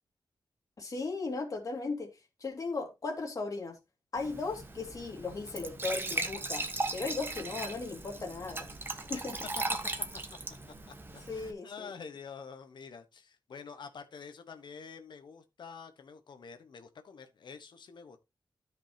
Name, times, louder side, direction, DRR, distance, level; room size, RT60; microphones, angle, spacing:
voice 1, 0.8-2.1 2.4-3.8 4.1-6.6 6.9-8.7 8.9-9.4 11.3-11.9, left 3 dB, 45° left, 2.7 m, -36 dB
Glass / Trickle dribble / Fill (with liquid), 4.2-11.5, right 2 dB, 25° right, 1.2 m, -38 dB
voice 2, 11.3-18.2, left 6 dB, 70° left, 1.2 m, -48 dB
13.0 x 5.5 x 2.9 m
wide cardioid pair, 115°, 8 cm